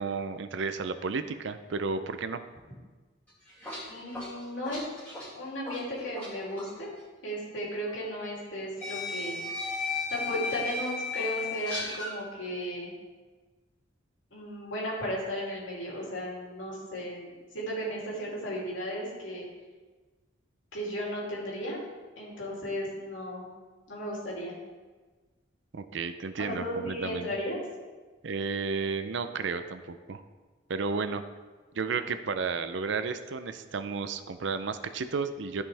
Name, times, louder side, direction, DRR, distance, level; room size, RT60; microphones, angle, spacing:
voice 1, 0.0-2.4 25.7-27.3 28.2-30.2 30.7-31.2 31.7-35.6, right 4 dB, 70° right, 10 dB, 0.5 m, -32 dB
sound 1, 3.3-6.3 6.6-6.8 7.9-8.0 8.8-12.1, left 4 dB, 5° left, 2.6 m, -35 dB
voice 2, 3.9-4.8 5.3-6.9 7.2-9.8 10.1-12.9 14.3-19.4 20.7-21.8 22.1-23.5 23.9-24.6 26.4-27.6, equal, 75° left, -5 dB, 2.9 m, -35 dB
13.5 x 5.5 x 3.4 m, 1.3 s
head